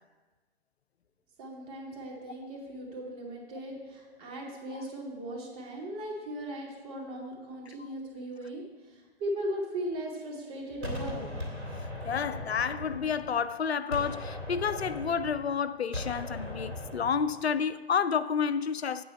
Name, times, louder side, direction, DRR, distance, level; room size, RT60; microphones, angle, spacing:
voice 1, 1.4-11.3, right 1 dB, 35° right, 2.5 m, -38 dB
Gunshot gunfire, 10.8-13.5 13.9-17.5, left 1 dB, 80° right, 2.4 m, -39 dB
voice 2, 12.0-19.0, left 6 dB, 80° left, 0.5 m, -30 dB
8.9 x 8.5 x 4.4 m
figure-of-eight pair, 115°, 31 cm